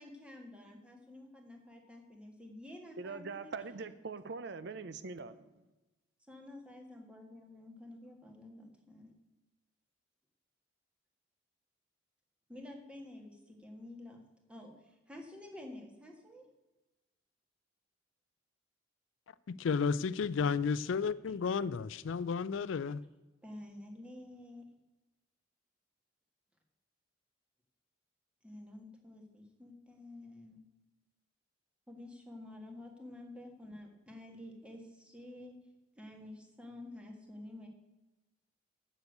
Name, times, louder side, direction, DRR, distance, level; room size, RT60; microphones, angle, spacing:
voice 1, 0.0-3.8 6.3-9.1 12.5-14.2 14.5-16.5 20.8-20.9 23.4-24.7 28.4-30.6 31.9-35.5 36.0-37.7, left 1 dB, 5° right, 1.7 m, -50 dB
voice 2, 3.0-5.4, right 4 dB, 60° right, 0.5 m, -42 dB
voice 3, 19.5-23.0, left 5 dB, 75° left, 0.4 m, -32 dB
8.0 x 7.1 x 8.0 m
head